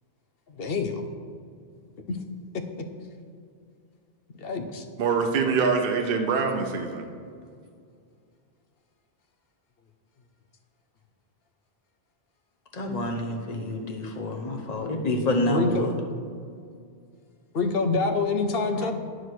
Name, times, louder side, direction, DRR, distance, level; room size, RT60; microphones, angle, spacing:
voice 1, 0.5-1.0 2.1-2.2 4.4-4.8 15.5-15.9 17.5-18.9, left 4 dB, 65° left, 7 dB, 1.0 m, -26 dB
voice 2, 5.0-7.1 18.7-18.9, right 5 dB, 65° right, 3 dB, 0.9 m, -25 dB
voice 3, 12.7-15.9, left 1 dB, 40° left, 2 dB, 1.1 m, -28 dB
9.8 x 5.1 x 6.1 m, 2.2 s
omnidirectional pair, 1.1 m